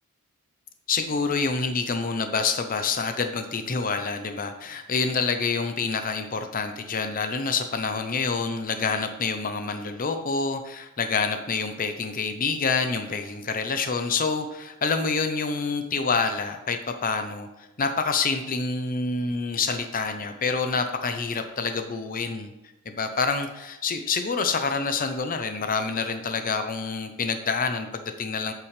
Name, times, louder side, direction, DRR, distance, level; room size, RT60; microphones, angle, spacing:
voice 1, 0.9-22.5 22.9-28.5, left 4 dB, 40° left, 7 dB, 0.7 m, -27 dB
8.6 x 7.5 x 3.3 m, 0.98 s
head